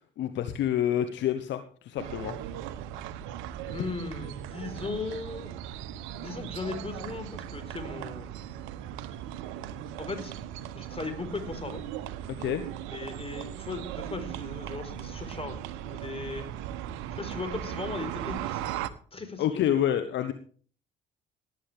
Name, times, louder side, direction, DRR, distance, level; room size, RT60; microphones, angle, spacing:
voice 1, 0.2-2.4 12.4-12.6 19.4-20.3, left 10 dB, 60° left, 9 dB, 1.2 m, -28 dB
sound 1, 2.0-18.9, right 11 dB, 70° right, 0.9 m, -38 dB
voice 2, 3.7-5.5 6.2-8.3 10.0-10.3 10.7-11.8 12.9-16.5 17.1-18.7 19.1-19.6, left 3 dB, 25° left, 8 dB, 4.6 m, -37 dB
18.0 x 10.0 x 3.5 m, 0.43 s
hypercardioid pair, 50°, 21 cm